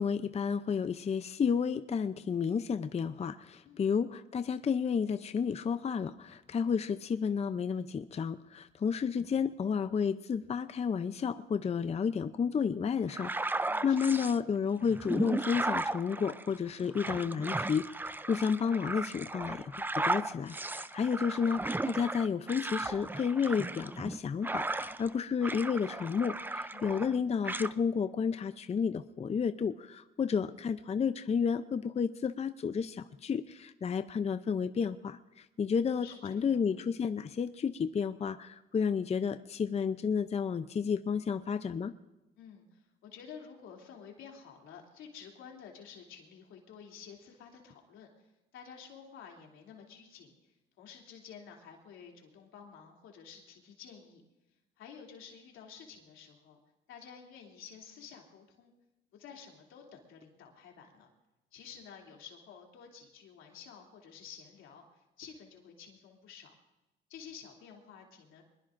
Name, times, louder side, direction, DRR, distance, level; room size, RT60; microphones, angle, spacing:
voice 1, 0.0-41.9, left 6 dB, 35° left, 11 dB, 0.5 m, -31 dB
sound 1, 13.1-14.4 14.9-25.1 25.4-27.2 27.4-27.7, right 2 dB, 10° right, 0.5 m, -36 dB
voice 2, 13.6-14.4 21.3-21.5 26.7-26.9 35.7-36.6 42.4-50.3 50.8-54.2 54.8-56.6 56.9-58.7 59.1-61.1 61.5-66.5 67.1-68.4, left 7 dB, 85° left, 0 dB, 2.9 m, -51 dB
23.5 x 21.0 x 2.6 m, 1.0 s
cardioid pair, 90°, 20 cm